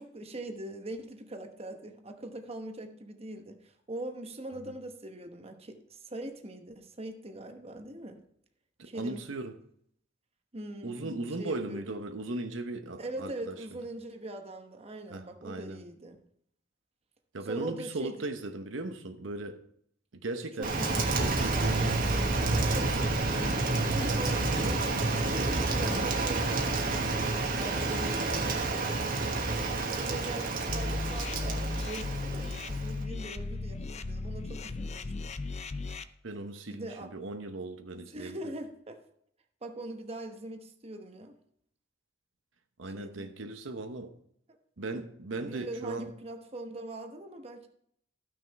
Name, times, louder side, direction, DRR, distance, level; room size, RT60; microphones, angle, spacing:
voice 1, 0.0-8.2 8.8-9.2 10.5-11.9 13.0-16.2 17.4-18.3 20.6-22.1 22.7-28.9 29.3-35.3 36.7-37.1 37.9-39.0 39.6-41.3 43.0-43.3 44.5-44.6 44.9-45.0 45.4-47.7, right 1 dB, 35° right, 1.0 m, -42 dB
voice 2, 8.8-9.5 10.8-13.5 15.1-15.8 17.3-19.6 20.1-20.7 21.1-21.9 36.2-38.4 42.8-44.1 44.8-46.1, right 2 dB, 85° right, 0.9 m, -37 dB
sound 1, 20.6-26.6, left 1 dB, 15° left, 1.3 m, -43 dB
Rain, 20.6-33.0, right 3 dB, 50° right, 1.4 m, -29 dB
sound 2, 30.7-36.0, left 3 dB, 35° left, 0.5 m, -35 dB
13.5 x 6.3 x 4.6 m
head